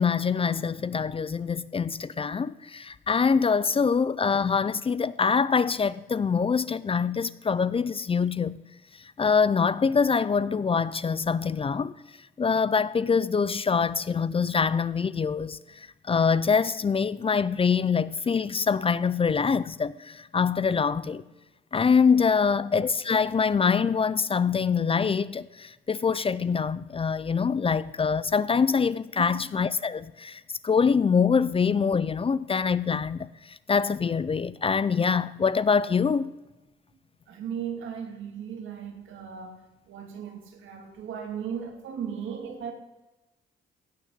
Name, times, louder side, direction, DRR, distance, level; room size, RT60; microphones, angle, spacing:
voice 1, 0.0-8.6 9.2-11.9 12.4-21.2 21.7-36.3, left 5 dB, 30° left, 0.5 m, -24 dB
voice 2, 37.3-39.6 39.9-42.7, right 8 dB, 75° right, 2.6 m, -36 dB
16.0 x 6.3 x 8.1 m
cardioid pair, 90°, 20 cm